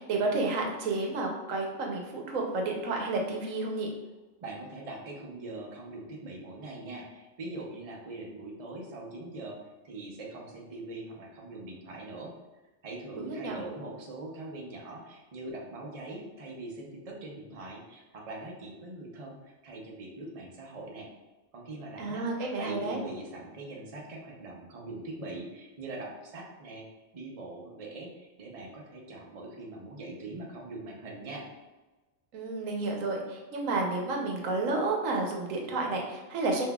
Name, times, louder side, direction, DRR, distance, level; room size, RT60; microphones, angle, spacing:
voice 1, 0.0-3.9 13.2-13.6 22.0-23.0 32.3-36.7, right 3 dB, 85° right, 1 dB, 1.1 m, -31 dB
voice 2, 4.4-9.6 9.8-12.3 12.8-21.1 21.5-22.2 22.6-26.9 27.1-31.4, right 2 dB, 35° right, -2 dB, 0.7 m, -42 dB
5.8 x 2.7 x 2.3 m, 1.2 s
omnidirectional pair, 1.3 m